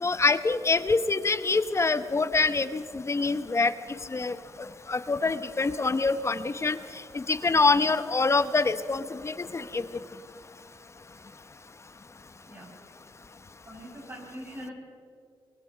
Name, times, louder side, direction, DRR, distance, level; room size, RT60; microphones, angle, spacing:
voice 1, 0.0-3.7 4.1-6.8 7.1-9.9, left 3 dB, 30° left, 12 dB, 0.9 m, -25 dB
voice 2, 13.7-14.7, equal, 30° right, -2 dB, 7.8 m, -42 dB
23.5 x 21.0 x 5.7 m, 2.3 s
cardioid pair, 75°, 9 cm